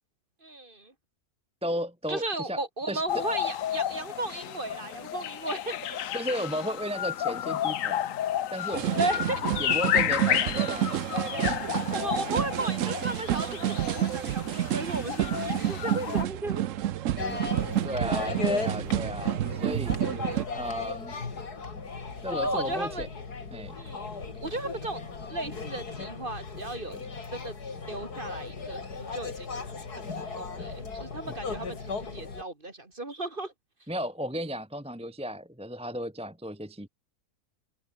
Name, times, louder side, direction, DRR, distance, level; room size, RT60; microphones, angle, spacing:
voice 1, 0.4-0.9 2.1-6.0 9.0-9.4 11.6-16.6 22.3-23.1 23.8-27.0 27.3-27.6 27.9-33.5, right 2 dB, 35° right, 3.1 m, -35 dB
voice 2, 1.6-2.6 2.9-3.2 6.1-8.1 8.5-9.1 9.6-11.1 17.8-20.0 20.5-21.1 22.2-23.1 23.5-23.8 31.2-31.3 33.9-36.9, equal, 5° right, 1.3 m, -34 dB
sound 1, 3.1-16.2, left 11 dB, 60° left, 1.1 m, -31 dB
sound 2, 8.7-20.4, right 12 dB, 65° right, 1.0 m, -29 dB
sound 3, 17.2-32.4, left 4 dB, 85° left, 3.5 m, -36 dB
omnidirectional pair, 1.6 m